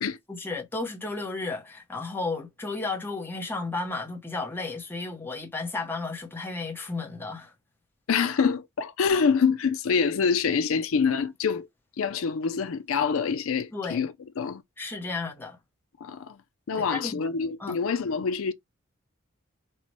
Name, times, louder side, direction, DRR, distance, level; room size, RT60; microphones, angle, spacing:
voice 1, 0.3-7.5 13.7-14.0 14.8-15.6 16.7-17.2 17.6-17.8, left 3 dB, 10° left, 0.8 m, -33 dB
voice 2, 8.1-11.7 12.0-14.6 16.0-16.4 16.7-18.5, left 5 dB, 70° left, 0.4 m, -26 dB
5.4 x 2.1 x 3.0 m
head